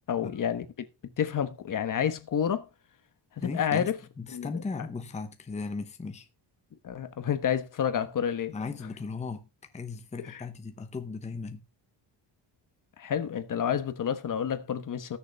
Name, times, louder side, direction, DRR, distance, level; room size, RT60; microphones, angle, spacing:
voice 1, 0.1-0.6 1.2-2.7 3.4-3.9 4.3-4.5 6.8-8.5 10.3-10.4 13.0-15.2, left 8 dB, 45° left, 1.1 m, -29 dB
voice 2, 3.4-3.9 4.2-6.3 8.5-9.5 9.7-11.6, left 4 dB, 15° left, 0.9 m, -37 dB
18.5 x 6.9 x 3.4 m
cardioid pair, 165°, 45 cm